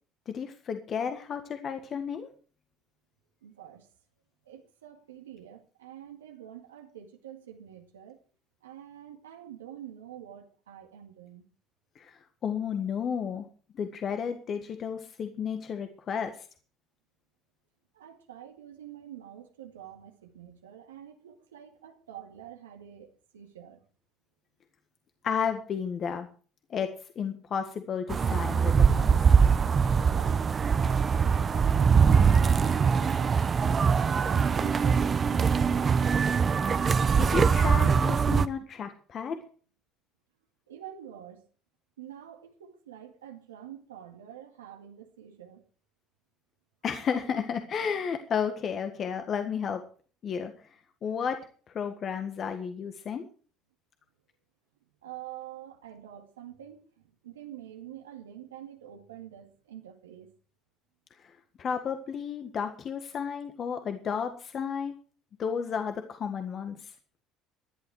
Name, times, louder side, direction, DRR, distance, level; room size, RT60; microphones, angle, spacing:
voice 1, 0.3-2.3 12.0-12.1 12.4-13.4 13.7-16.3 25.2-26.3 26.7-29.1 37.2-39.4 46.8-49.8 50.2-50.5 51.0-51.4 51.7-53.2 61.6-64.9 65.4-66.8, left 7 dB, 50° left, 1.7 m, -32 dB
voice 2, 3.4-3.9 4.5-8.2 8.6-11.4 17.9-23.8 27.7-27.8 30.0-30.4 30.8-33.5 34.0-36.5 40.7-41.4 42.0-45.6 55.0-60.3, right 11 dB, 90° right, 1.9 m, -46 dB
sound 1, 28.1-38.5, right 6 dB, 35° right, 0.9 m, -22 dB
16.5 x 11.0 x 4.9 m
hypercardioid pair, 65°, 0 cm